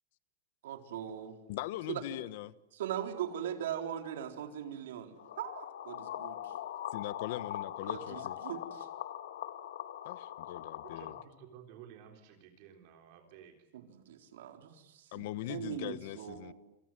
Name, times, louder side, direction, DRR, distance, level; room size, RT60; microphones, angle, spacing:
voice 1, 0.6-1.3 1.9-2.0 2.7-6.5 7.9-8.9 13.7-16.5, right 9 dB, 75° right, 4.1 m, -40 dB
voice 2, 1.5-2.5 6.9-8.4 10.0-11.2 15.1-16.5, left 15 dB, 45° left, 1.1 m, -41 dB
sound 1, 5.2-11.2, left 11 dB, 80° left, 2.3 m, -41 dB
voice 3, 10.8-13.7, right 9 dB, 40° right, 3.9 m, -54 dB
29.0 x 26.5 x 7.6 m
supercardioid pair, 175°, 0 cm